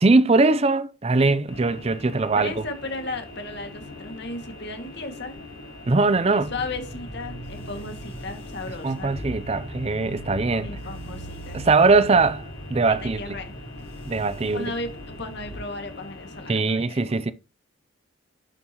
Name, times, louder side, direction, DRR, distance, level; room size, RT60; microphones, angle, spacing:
voice 1, 0.0-2.5 5.9-6.5 8.8-10.7 11.5-12.4 12.7-13.4 14.1-14.7 16.5-17.3, right 3 dB, 30° right, 0.5 m, -21 dB
sound 1, 1.5-16.6, left 2 dB, 85° left, 5.8 m, -42 dB
voice 2, 2.3-5.4 6.3-9.1 10.6-11.6 12.9-13.5 14.4-17.0, left 2 dB, 55° left, 2.1 m, -35 dB
sound 2, 6.4-15.6, right 1 dB, 35° left, 3.9 m, -40 dB
11.5 x 7.6 x 3.0 m
head